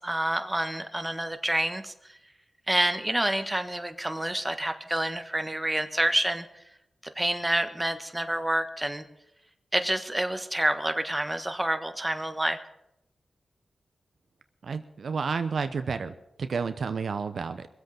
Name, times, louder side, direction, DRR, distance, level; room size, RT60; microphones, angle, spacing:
voice 1, 0.0-1.9 2.7-6.5 7.1-9.0 9.7-12.6, right 1 dB, 15° right, 8 dB, 1.3 m, -28 dB
voice 2, 14.6-16.1 16.4-17.7, right 5 dB, 75° right, 10 dB, 0.8 m, -30 dB
22.0 x 8.0 x 5.8 m, 0.83 s
cardioid pair, 60°, 0 cm